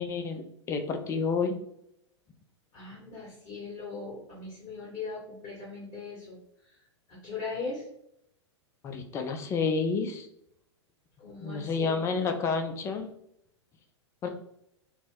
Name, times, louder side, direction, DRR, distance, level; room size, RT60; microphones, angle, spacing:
voice 1, 0.0-1.6 8.8-10.3 11.4-13.1 14.2-14.3, left 4 dB, 20° left, 6 dB, 0.4 m, -30 dB
voice 2, 2.7-6.4 7.2-7.8 11.2-12.0 14.2-14.3, left 4 dB, 35° left, -5 dB, 1.3 m, -39 dB
2.8 x 2.0 x 3.5 m, 0.75 s
figure-of-eight pair, 100°, 15 cm